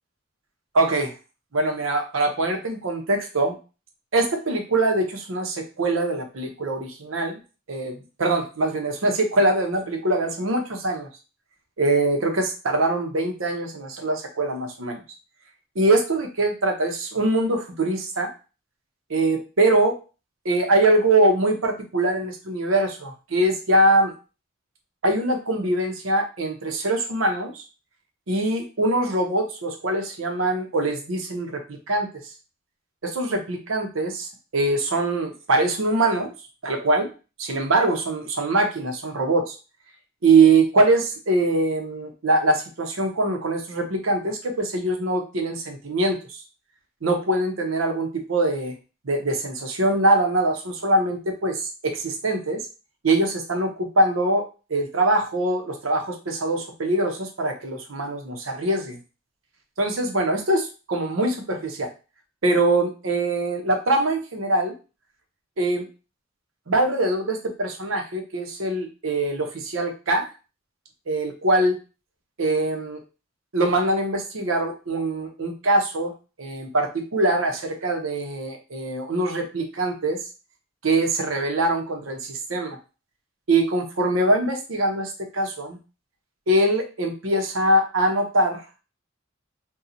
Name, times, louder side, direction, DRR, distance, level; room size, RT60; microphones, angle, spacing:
voice 1, 0.7-1.1 1.5-3.5 4.1-7.4 7.7-11.1 11.8-15.0 15.8-18.3 19.1-20.0 20.4-24.1 25.0-27.6 28.3-31.6 31.9-32.1 33.0-36.3 36.6-37.1 37.4-39.5 40.2-46.4 47.0-48.7 49.0-52.6 53.0-54.4 54.7-59.0 59.8-61.9 62.4-64.7 65.6-65.9 66.7-70.3 71.1-71.8 72.4-73.0 73.5-76.1 76.4-80.2 80.8-82.8 83.5-85.8 86.5-88.6, right 2 dB, 85° right, 4 dB, 0.8 m, -23 dB
2.8 x 2.3 x 3.8 m, 0.32 s
head